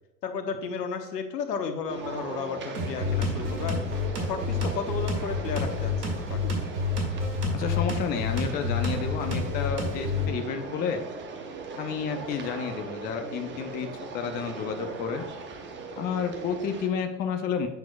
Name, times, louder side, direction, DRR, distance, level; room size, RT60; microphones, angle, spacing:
voice 1, 0.2-3.8 4.2-6.7, left 5 dB, 70° left, 7 dB, 1.1 m, -33 dB
sound 1, 1.9-16.9, right 4 dB, 25° right, 0.8 m, -39 dB
sound 2, 2.7-10.3, left 3 dB, 70° right, 2.1 m, -29 dB
voice 2, 7.5-11.0 11.8-13.9 14.1-15.3 16.0-17.7, left 6 dB, 20° left, 6 dB, 0.5 m, -31 dB
8.5 x 6.0 x 2.3 m, 1.0 s
hypercardioid pair, 90°, 50 cm